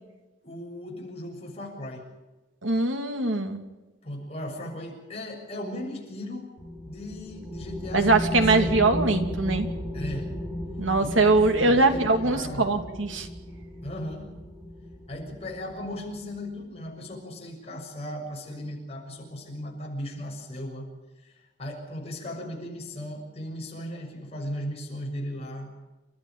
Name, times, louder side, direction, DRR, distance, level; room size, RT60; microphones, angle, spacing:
voice 1, 0.4-2.0 4.0-6.5 6.9-8.9 9.9-10.3 11.0-11.3 11.6-12.7 13.8-14.3 15.1-20.9 21.2-25.7, left 1 dB, 30° left, -1 dB, 6.8 m, -37 dB
voice 2, 2.6-3.6 7.9-9.7 10.8-13.3, right 3 dB, 90° right, 6 dB, 2.7 m, -22 dB
sound 1, 6.6-16.6, left 1 dB, 10° right, 6.5 m, -35 dB
29.5 x 13.5 x 9.0 m, 1.1 s
head